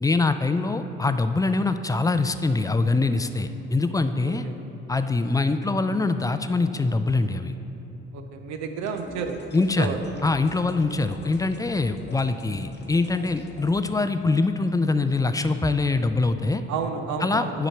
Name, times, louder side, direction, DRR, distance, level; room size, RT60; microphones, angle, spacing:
voice 1, 0.0-4.5 4.9-7.5 9.5-16.6 17.2-17.7, left 3 dB, 10° left, 9 dB, 0.3 m, -24 dB
voice 2, 4.2-4.5 8.1-9.4 9.8-10.0 16.7-17.7, right 6 dB, 70° right, 6 dB, 0.6 m, -31 dB
sound 1, 8.8-13.8, left 3 dB, 35° left, 0.8 m, -45 dB
8.2 x 4.9 x 4.4 m, 3.0 s
hypercardioid pair, 55°, 30 cm